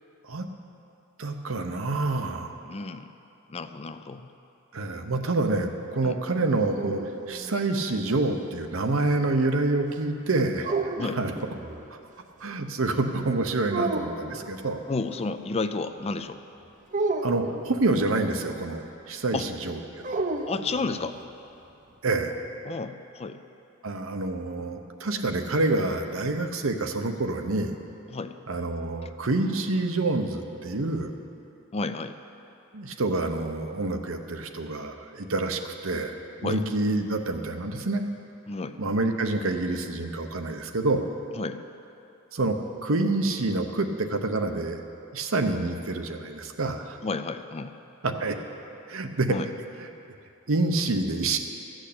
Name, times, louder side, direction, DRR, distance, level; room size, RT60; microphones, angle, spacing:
voice 1, 1.2-2.6 4.7-7.0 7.3-11.3 11.9-12.0 12.4-14.8 17.2-20.2 22.0-22.3 23.8-27.7 28.5-31.1 32.7-38.0 38.8-41.1 42.3-44.8 45.1-47.0 48.0-48.4 48.9-49.4 49.8-49.9 50.5-51.4, right 2 dB, 80° right, 5 dB, 0.9 m, -27 dB
voice 2, 2.6-3.1 3.5-4.3 6.0-6.2 10.9-11.2 14.9-16.4 19.3-19.5 20.5-21.2 22.6-23.4 28.1-28.4 31.7-32.1 36.4-36.6 38.5-38.8 41.3-41.6 47.0-47.7 49.3-49.5, left 3 dB, 30° left, 10 dB, 0.4 m, -31 dB
sound 1, 6.3-8.2 10.6-11.9 13.7-14.5 16.9-18.0 20.0-21.2, right 3 dB, 40° right, 0.7 m, -32 dB
14.0 x 6.4 x 8.5 m, 2.8 s
head